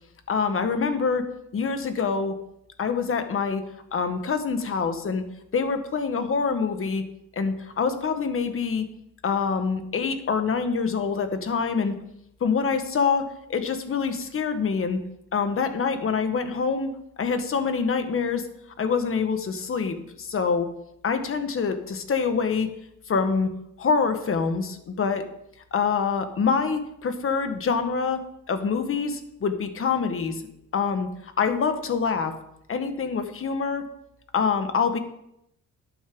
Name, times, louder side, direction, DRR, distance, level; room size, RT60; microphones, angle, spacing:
voice 1, 0.3-1.3 1.5-2.3 2.8-3.6 3.9-5.2 5.5-7.0 7.3-8.8 9.2-11.9 12.4-15.0 15.3-16.9 17.2-18.5 18.8-20.7 21.0-22.7 23.1-23.5 23.8-25.3 25.7-30.4 30.7-31.1 31.4-32.3 32.7-33.8 34.3-35.0, left 5 dB, 45° left, 8 dB, 1.5 m, -25 dB
11.5 x 8.6 x 3.9 m, 0.78 s
cardioid pair, 90°, 30 cm